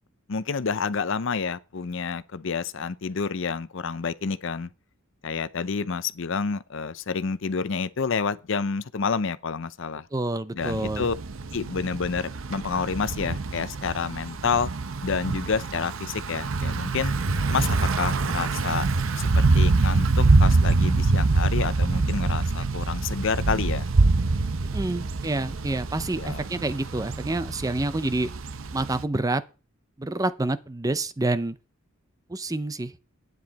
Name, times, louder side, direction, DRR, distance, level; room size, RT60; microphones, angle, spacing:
voice 1, 0.3-4.7 5.2-10.1 10.5-11.1 11.5-14.7 15.0-17.1 17.5-18.9 19.2-23.9 26.1-26.4, left 5 dB, 60° left, 0.6 m, -29 dB
voice 2, 10.1-11.1 24.6-28.3 28.7-29.4 30.0-31.6 32.3-32.9, right 2 dB, 15° right, 0.5 m, -28 dB
Thunder / Bicycle, 10.6-29.0, right 3 dB, 70° right, 0.7 m, -25 dB
10.5 x 9.3 x 4.1 m
head